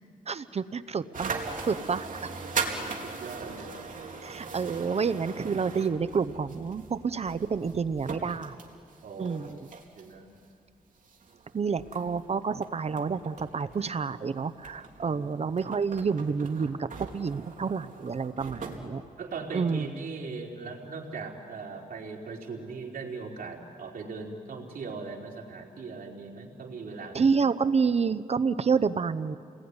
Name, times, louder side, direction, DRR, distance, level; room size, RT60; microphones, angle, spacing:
voice 1, 0.3-1.4 1.7-2.3 4.2-8.6 9.2-9.7 11.5-16.9 17.1-19.0 19.5-19.9 27.1-29.4, right 5 dB, 45° right, 13 dB, 0.8 m, -29 dB
sound 1, 1.1-10.4 11.0-18.8, right 4 dB, 60° right, 3.3 m, -40 dB
voice 2, 2.5-3.7 9.0-9.4 10.0-10.3 15.0-15.2 19.2-27.3, right 4 dB, 80° right, -1 dB, 4.2 m, -39 dB
29.5 x 21.0 x 9.7 m, 2.3 s
wide cardioid pair, 100°, 15 cm